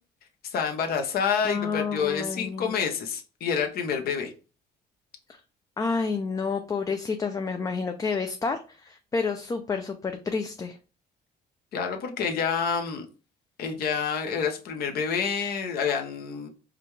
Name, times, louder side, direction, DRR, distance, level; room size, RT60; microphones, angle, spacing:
voice 1, 0.4-4.3 11.7-13.1 13.6-16.5, left 6 dB, 65° left, 0.8 m, -28 dB
voice 2, 1.4-2.7 5.8-10.8, left 4 dB, 20° left, 0.4 m, -29 dB
4.9 x 2.3 x 3.1 m
cardioid pair, 110°, 17 cm